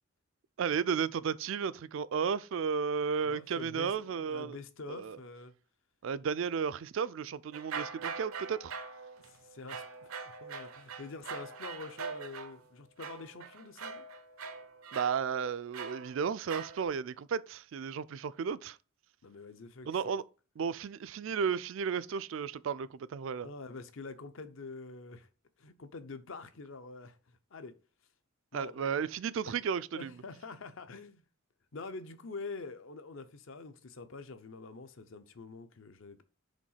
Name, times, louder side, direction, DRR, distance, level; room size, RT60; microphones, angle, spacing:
voice 1, 0.6-4.6 5.0-5.2 6.0-8.7 14.9-18.8 19.9-20.2 20.6-23.5 28.5-30.1, right 6 dB, 65° right, 0.3 m, -33 dB
voice 2, 3.2-5.5 9.2-14.1 19.2-19.9 23.4-25.3 25.6-27.8 28.5-28.9 29.4-29.6 29.9-31.2 31.7-36.2, left 3 dB, 65° left, 0.7 m, -46 dB
sound 1, 7.5-12.6 13.0-16.8, right 5 dB, 85° right, 0.7 m, -43 dB
5.2 x 3.6 x 5.6 m
head